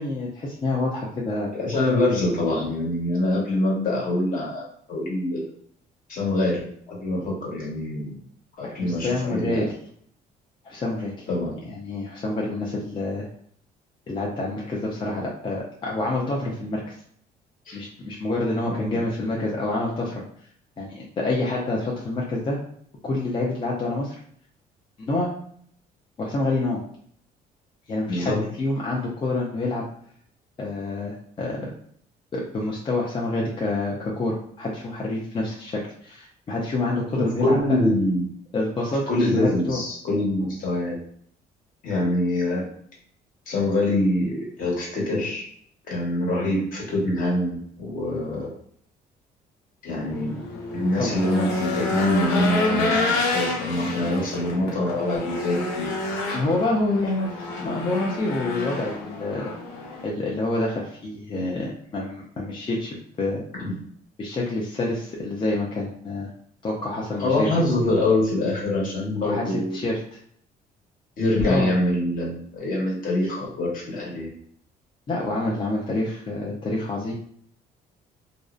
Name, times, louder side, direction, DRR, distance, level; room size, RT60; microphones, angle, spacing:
voice 1, 0.0-1.9 8.6-9.7 10.6-11.2 11.7-13.3 14.1-16.9 17.7-20.2 20.8-22.6 23.0-24.1 25.1-25.3 26.2-26.8 27.9-29.8 30.6-31.7 32.3-37.8 38.5-39.8 51.0-51.2 56.3-59.5 60.0-63.4 64.2-66.3 66.6-67.5 69.2-69.4 69.7-70.2 71.4-71.7 75.1-77.1, left 2 dB, 30° left, -3 dB, 0.5 m, -27 dB
voice 2, 1.5-5.4 6.1-6.6 6.9-8.2 8.6-9.6 11.3-11.5 17.7-17.8 18.8-19.0 28.1-28.4 37.1-38.2 39.1-41.0 41.8-42.7 43.5-45.4 45.9-48.5 49.8-50.3 50.7-53.0 53.3-55.9 63.5-63.7 67.2-69.8 71.2-74.3, left 1 dB, 55° left, -3 dB, 1.2 m, -24 dB
Race car auto racing / Engine, 50.0-60.1, left 2 dB, 90° left, 0.8 m, -28 dB
2.6 x 2.1 x 2.4 m, 0.63 s
cardioid pair, 110°, 17 cm